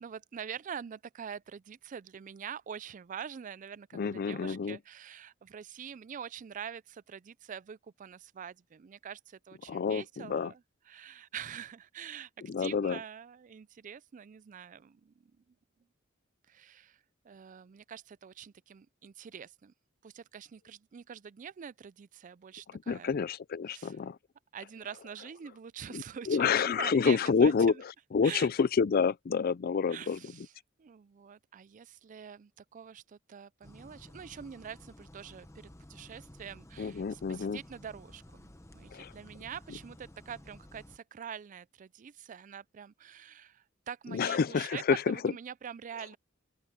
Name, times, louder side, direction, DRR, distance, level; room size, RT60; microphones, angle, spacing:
voice 1, 0.0-10.6 10.9-12.3 12.6-15.5 16.5-19.7 20.0-23.1 23.7-24.0 24.5-27.5 28.2-28.5 29.9-30.5 30.8-46.2, right 8 dB, 40° right, 0.4 m, -45 dB
voice 2, 3.9-4.8 9.7-10.5 12.4-13.0 22.9-24.2 25.9-30.2 36.8-37.6 38.9-39.1 44.1-45.2, left 5 dB, 50° left, 0.4 m, -28 dB
sound 1, 33.6-41.0, left 1 dB, 15° left, 1.1 m, -53 dB
open air
head